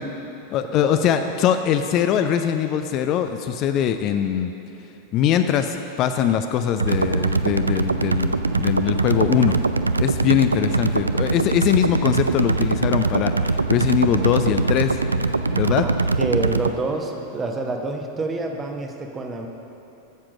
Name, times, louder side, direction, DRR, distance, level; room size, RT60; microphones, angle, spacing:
voice 1, 0.5-4.5 5.1-9.6 10.0-15.0 15.3-15.8, left 9 dB, 35° left, 8 dB, 0.4 m, -22 dB
sound 1, 6.8-16.7, right 3 dB, 80° right, 0.3 m, -22 dB
voice 2, 15.7-19.5, right 3 dB, 20° right, 3 dB, 1.0 m, -28 dB
9.6 x 7.4 x 6.2 m, 2.9 s
figure-of-eight pair, 90°, 0 cm